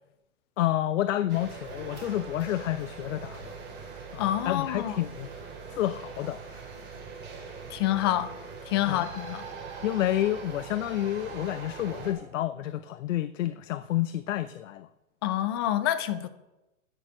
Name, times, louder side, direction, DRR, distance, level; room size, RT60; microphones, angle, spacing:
voice 1, 0.6-3.5 4.1-5.3 5.7-6.6 8.9-9.1 9.8-14.9, left 13 dB, 60° left, 0.6 m, -29 dB
sound 1, 1.3-12.1, right 5 dB, 25° right, 3.2 m, -42 dB
voice 2, 4.2-5.0 7.7-8.3 8.7-9.4 15.2-16.3, left 13 dB, 20° left, 0.3 m, -27 dB
12.5 x 6.6 x 6.2 m
hypercardioid pair, 125°, 43 cm